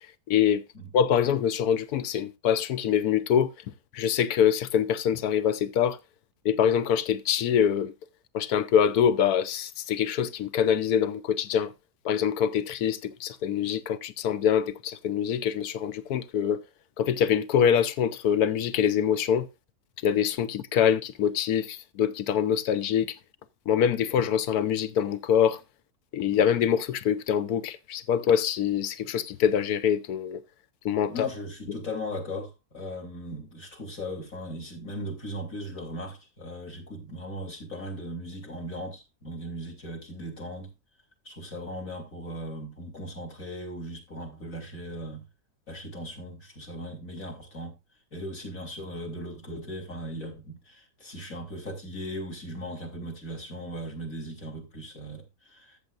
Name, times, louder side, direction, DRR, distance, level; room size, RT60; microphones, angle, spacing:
voice 1, 0.3-0.6 0.9-3.5 3.9-6.0 6.4-7.9 8.3-11.7 12.0-16.6 17.0-19.5 20.0-23.2 23.7-25.6 26.1-30.4 30.8-31.3, left 8 dB, 85° left, 1.3 m, -24 dB
voice 2, 31.1-40.7 41.2-45.3 45.7-47.7 48.1-55.8, equal, 60° left, 4.1 m, -38 dB
14.0 x 7.8 x 2.5 m
omnidirectional pair, 1.6 m